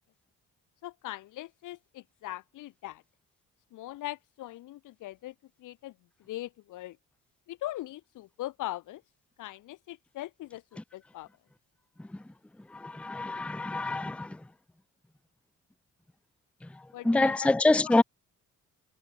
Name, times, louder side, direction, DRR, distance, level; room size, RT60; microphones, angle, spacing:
voice 1, 0.8-3.0 3.7-7.0 7.5-9.0 9.4-11.3 16.9-17.6 17.8-18.0, left 15 dB, 90° left, 5.0 m, -41 dB
voice 2, 12.7-14.4 17.0-18.0, left 2 dB, 5° left, 0.6 m, -25 dB
cardioid pair, 90°, 30 cm